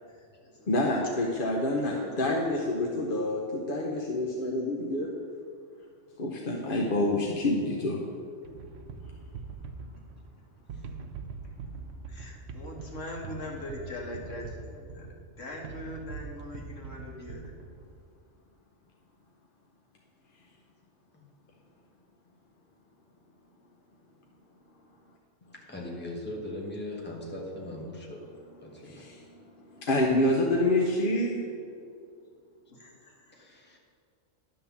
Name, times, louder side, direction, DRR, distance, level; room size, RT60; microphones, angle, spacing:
voice 1, 0.1-0.7 1.8-2.4 12.1-17.5 30.9-31.0 31.3-31.5 32.7-33.5, left 1 dB, 75° left, -1 dB, 1.8 m, -42 dB
voice 2, 0.7-5.1 6.2-8.0 28.8-29.2 29.8-31.4, left 1 dB, 50° left, -1 dB, 0.9 m, -27 dB
sound 1, 8.4-18.0, right 4 dB, 75° right, 1.0 m, -43 dB
voice 3, 11.5-11.9 21.1-21.3 25.7-28.3 28.6-29.1 33.3-33.8, left 1 dB, 10° left, -2 dB, 1.3 m, -40 dB
11.0 x 3.8 x 7.1 m, 2.3 s
omnidirectional pair, 1.3 m